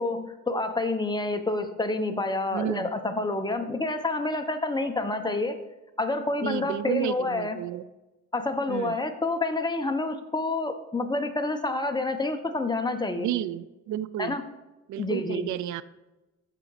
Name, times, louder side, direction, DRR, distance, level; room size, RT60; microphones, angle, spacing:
voice 1, 0.0-5.6 6.0-7.6 8.3-13.3 14.2-14.4 15.0-15.5, left 2 dB, 15° left, 6 dB, 1.2 m, -28 dB
voice 2, 2.5-2.9 6.4-7.8 8.7-9.0 13.2-14.4 14.9-15.8, right 12 dB, 70° right, 16 dB, 0.6 m, -31 dB
14.5 x 5.1 x 5.0 m, 1.0 s
cardioid pair, 90°, 30 cm